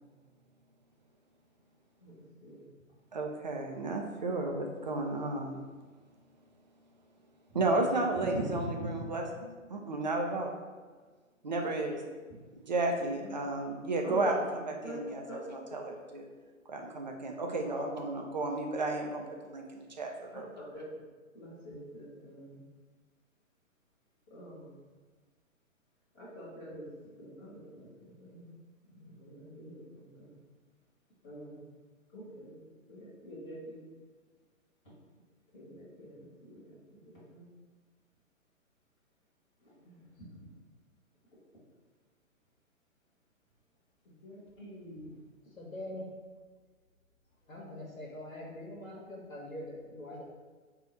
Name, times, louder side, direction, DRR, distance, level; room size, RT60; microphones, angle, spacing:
voice 1, 3.1-5.6 7.5-10.5 11.4-12.0 12.7-16.3 16.7-20.5, right 2 dB, 35° right, 1 dB, 0.4 m, -33 dB
voice 2, 21.3-22.6 24.3-24.6 26.2-26.8 27.2-27.6 28.2-28.5 29.2-29.8 30.2-30.3 31.2-31.6 32.1-32.5 32.9-33.8 35.5-36.2 37.3-37.4 39.8-39.9 44.2-45.1, right 1 dB, 15° left, -8 dB, 1.2 m, -44 dB
voice 3, 45.6-46.1 47.5-50.2, left 1 dB, 80° left, -1 dB, 1.0 m, -43 dB
4.1 x 2.3 x 3.9 m, 1.4 s
figure-of-eight pair, 125°, 41 cm